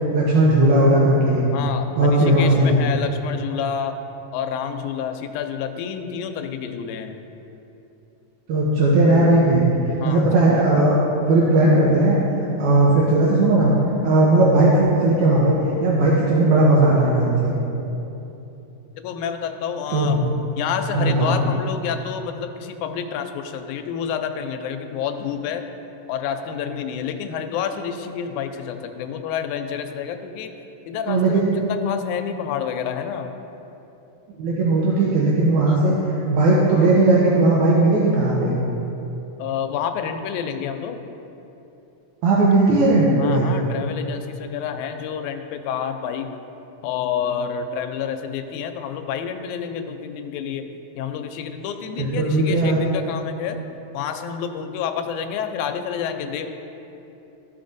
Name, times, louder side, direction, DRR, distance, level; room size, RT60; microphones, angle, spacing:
voice 1, 0.1-1.5 2.0-2.8 8.5-9.7 10.0-11.0 11.3-12.2 12.6-13.7 14.0-17.5 19.9-20.2 20.9-21.4 31.1-31.6 34.4-36.0 36.3-38.6 42.2-43.5 52.0-52.8, right 2 dB, 80° right, -5 dB, 2.2 m, -17 dB
voice 2, 1.5-4.0 4.3-7.2 10.0-10.9 19.0-25.6 26.1-30.5 30.9-33.4 35.7-35.8 39.4-41.0 43.2-46.3 46.8-50.7 51.0-53.6 53.9-56.5, left 7 dB, 85° left, 6 dB, 2.0 m, -29 dB
13.5 x 5.6 x 2.6 m, 3.0 s
omnidirectional pair, 3.4 m